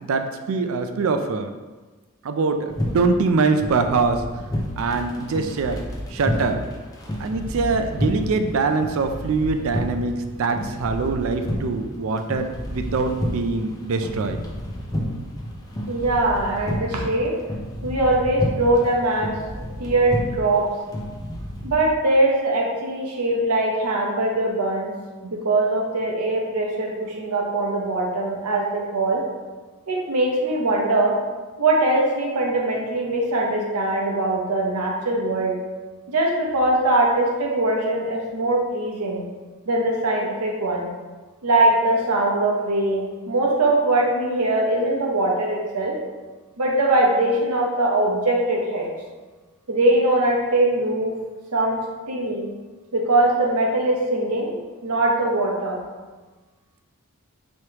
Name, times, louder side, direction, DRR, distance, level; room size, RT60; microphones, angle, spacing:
voice 1, 0.0-1.5 2.2-4.3 4.8-5.8 6.1-6.6 7.2-14.4, right 4 dB, 65° right, 7 dB, 0.4 m, -23 dB
sound 1, 2.7-21.7, equal, 15° left, 0.5 m, -31 dB
voice 2, 15.9-17.4 17.8-20.7 21.6-24.9 25.2-29.2 29.9-31.2 31.6-35.6 36.1-39.2 39.7-40.9 41.4-46.0 46.6-48.9 49.7-51.2 51.5-52.5 52.9-54.5 54.8-55.8, right 2 dB, 90° right, -1 dB, 0.9 m, -21 dB
4.6 x 3.1 x 2.9 m, 1.3 s
head